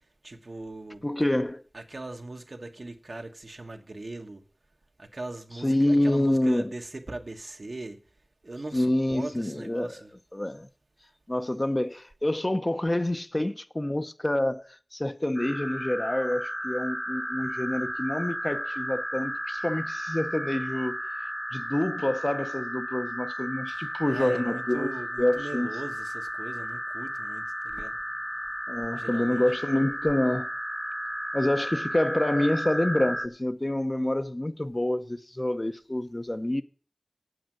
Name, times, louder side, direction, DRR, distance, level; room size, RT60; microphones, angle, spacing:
voice 1, 0.2-1.1 1.7-4.4 5.0-8.0 8.4-10.1 23.7-28.0 29.0-29.4, right 2 dB, 80° right, 1.2 m, -40 dB
voice 2, 1.0-1.6 5.6-6.7 8.7-10.0 10.3-10.7 11.3-21.0 21.5-24.9 25.2-25.7 28.7-30.5 31.3-36.6, left 1 dB, 35° left, 0.8 m, -27 dB
sound 1, 15.3-33.3, equal, ahead, 0.8 m, -34 dB
8.7 x 7.8 x 7.6 m
wide cardioid pair, 45°, 0 cm